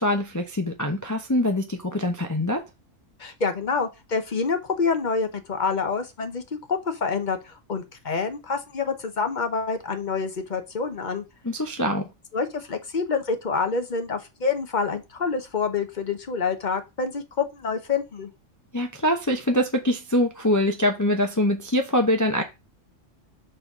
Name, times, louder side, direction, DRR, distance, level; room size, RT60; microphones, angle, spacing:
voice 1, 0.0-2.6 11.4-12.1 18.7-22.4, left 1 dB, 20° left, 0.7 m, -24 dB
voice 2, 3.2-6.4 6.7-11.2 12.3-18.3, left 5 dB, 40° left, 1.0 m, -27 dB
5.4 x 4.1 x 6.0 m
omnidirectional pair, 1.3 m